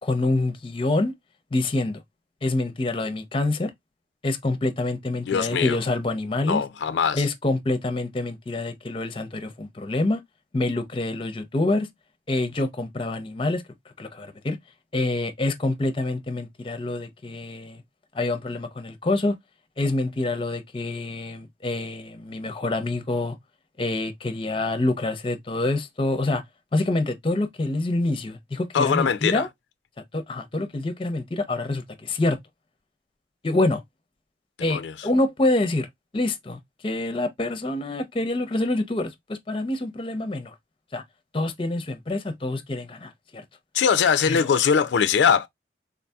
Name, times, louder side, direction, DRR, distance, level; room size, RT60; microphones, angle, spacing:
voice 1, 0.0-1.1 1.5-2.0 2.4-3.7 4.2-6.6 7.1-10.2 10.5-11.9 12.3-13.6 14.0-14.6 14.9-17.8 18.1-19.4 19.8-23.4 23.8-26.4 26.7-29.5 30.1-32.4 33.4-33.8 34.6-35.9 36.1-40.5 40.9-41.0 41.3-43.4 44.3-44.4, left 2 dB, 30° left, 0.5 m, -26 dB
voice 2, 5.3-5.8 6.4-7.2 28.7-29.5 34.7-34.9 43.7-45.5, left 7 dB, 90° left, 0.4 m, -21 dB
3.6 x 2.7 x 2.2 m
head